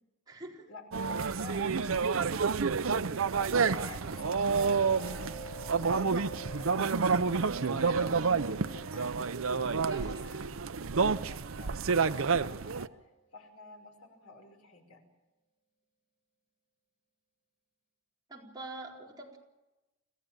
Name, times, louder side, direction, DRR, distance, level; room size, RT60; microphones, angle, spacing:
voice 1, 0.3-0.7 3.7-4.0 9.8-10.2 18.3-19.4, right 2 dB, 20° right, -2 dB, 4.3 m, -46 dB
sound 1, 0.9-12.9, right 5 dB, 65° right, 0.7 m, -29 dB
voice 2, 1.3-2.2 3.5-5.5 5.8-10.5 11.0-15.0, left 3 dB, 80° left, 3 dB, 5.3 m, -51 dB
sound 2, 3.5-12.9, right 2 dB, 40° left, 4.9 m, -49 dB
27.0 x 15.0 x 8.9 m, 1.1 s
head